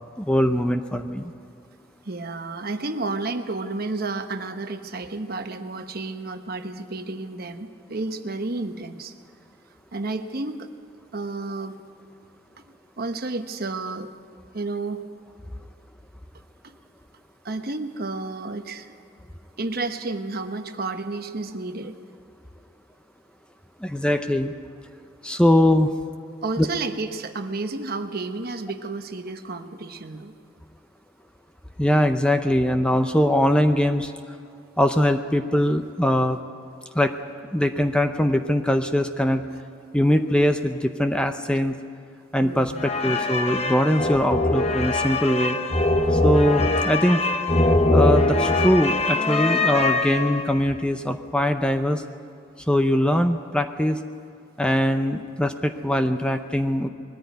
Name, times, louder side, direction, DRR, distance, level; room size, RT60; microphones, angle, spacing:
voice 1, 0.2-1.3 23.8-24.5 25.2-25.9 26.6-26.7 31.8-34.1 34.8-36.4 36.9-37.1 37.5-39.5 39.9-41.8 42.3-45.6 46.1-47.3 47.9-52.0 52.7-54.0 54.6-56.9, left 1 dB, 5° left, 7 dB, 0.6 m, -21 dB
voice 2, 2.0-9.1 9.9-10.7 11.1-11.8 13.0-14.1 14.5-15.1 16.6-16.8 17.4-18.9 19.6-22.2 26.4-30.4 39.5-39.6 42.4-42.8, right 3 dB, 50° right, 8 dB, 1.1 m, -31 dB
sound 1, 42.8-50.6, left 2 dB, 30° left, 1.1 m, -22 dB
20.5 x 14.0 x 9.4 m, 2.4 s
head